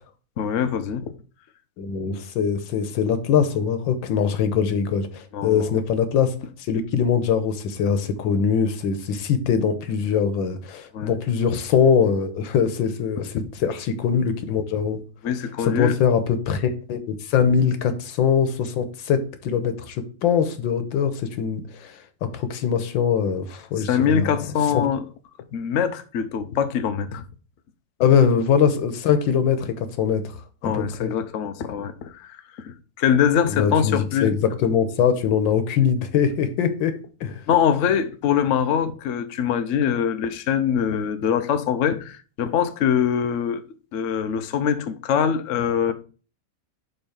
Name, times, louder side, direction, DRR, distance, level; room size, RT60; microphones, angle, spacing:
voice 1, 0.4-1.1 5.3-5.7 10.9-11.1 15.2-16.0 23.8-25.0 25.5-27.2 30.6-34.3 37.5-43.6 43.9-45.9, left 8 dB, 65° left, 0.8 m, -23 dB
voice 2, 1.8-15.0 15.6-24.3 24.7-24.8 28.0-31.1 33.4-37.4, left 7 dB, 85° left, 1.6 m, -22 dB
5.6 x 4.3 x 5.7 m
omnidirectional pair, 2.0 m